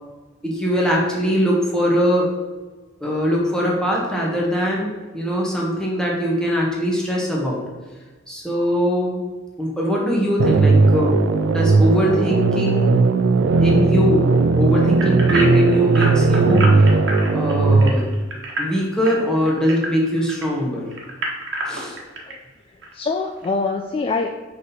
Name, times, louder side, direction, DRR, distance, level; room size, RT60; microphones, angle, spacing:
voice 1, 0.4-2.3 3.0-7.6 8.3-9.2 9.6-13.0 13.6-16.9 17.3-18.1 18.6-20.9 21.7-22.0, equal, 5° left, -4 dB, 1.3 m, -21 dB
sound 1, 10.4-17.9, right 3 dB, 80° right, 0.4 m, -17 dB
sound 2, 15.0-20.4 20.9-22.3 22.8-22.9 23.4-23.5, right 1 dB, 65° right, 1.2 m, -28 dB
voice 2, 22.6-24.4, left 3 dB, 30° left, 4 dB, 0.3 m, -25 dB
5.1 x 4.1 x 5.6 m, 1.3 s
head